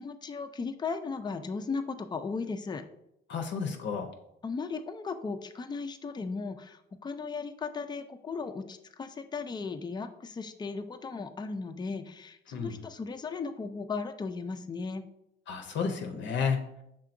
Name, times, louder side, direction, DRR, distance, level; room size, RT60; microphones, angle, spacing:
voice 1, 0.0-2.8 4.4-15.0, left 4 dB, 20° left, 8 dB, 0.4 m, -36 dB
voice 2, 3.3-4.1 12.5-12.8 15.5-16.7, left 6 dB, 65° left, 4 dB, 0.6 m, -31 dB
5.7 x 3.6 x 2.5 m, 0.80 s
cardioid pair, 90°, 20 cm